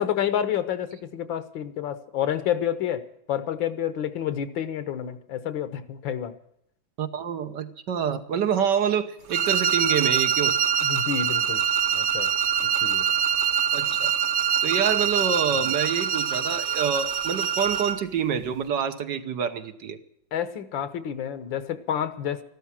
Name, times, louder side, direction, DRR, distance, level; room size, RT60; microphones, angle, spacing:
voice 1, 0.0-3.0 3.3-6.3 10.8-11.6 11.9-12.3 12.8-13.1 15.5-15.7 20.3-22.4, left 9 dB, 90° left, 12 dB, 1.9 m, -29 dB
voice 2, 7.0-10.6 13.7-14.1 14.6-20.0, right 7 dB, 70° right, 9 dB, 1.6 m, -27 dB
sound 1, 9.3-18.0, right 8 dB, 45° right, 1.1 m, -24 dB
14.0 x 12.5 x 7.4 m, 0.73 s
omnidirectional pair, 2.0 m